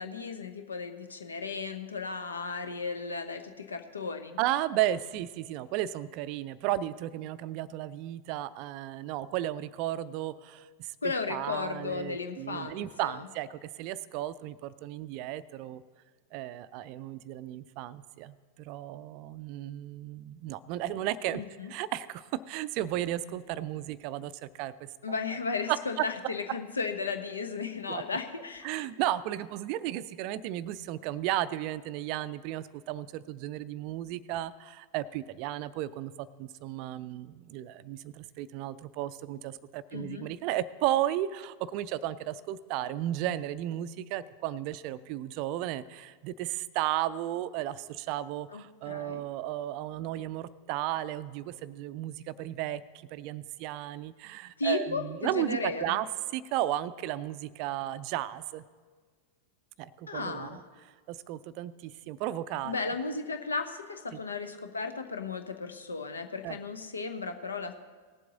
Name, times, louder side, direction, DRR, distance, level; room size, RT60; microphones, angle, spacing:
voice 1, 0.0-4.4 11.0-13.2 21.3-21.7 25.0-28.9 39.9-40.3 48.5-49.2 54.6-56.0 60.1-60.6 62.6-67.7, left 4 dB, 75° left, 8 dB, 0.9 m, -35 dB
voice 2, 4.4-10.9 11.3-15.8 16.3-21.4 21.7-24.9 25.7-26.1 27.9-28.0 28.6-56.1 56.3-58.6 59.8-62.9 64.1-64.2 66.4-66.6, right 13 dB, 45° right, 16 dB, 0.4 m, -34 dB
18.0 x 7.6 x 3.9 m, 1.5 s
figure-of-eight pair, 90°, 0 cm